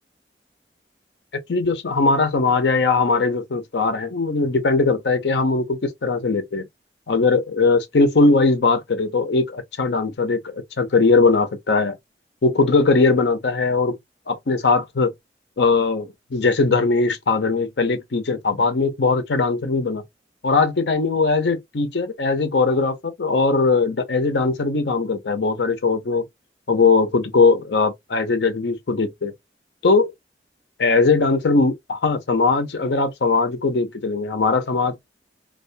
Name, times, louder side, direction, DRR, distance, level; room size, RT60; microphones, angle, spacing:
voice 1, 1.3-6.7 7.1-12.0 12.4-13.9 14.3-15.1 15.6-20.0 20.4-26.2 26.7-29.3 29.8-30.1 30.8-34.9, left 3 dB, 80° left, 0.6 m, -20 dB
2.3 x 2.2 x 2.5 m
head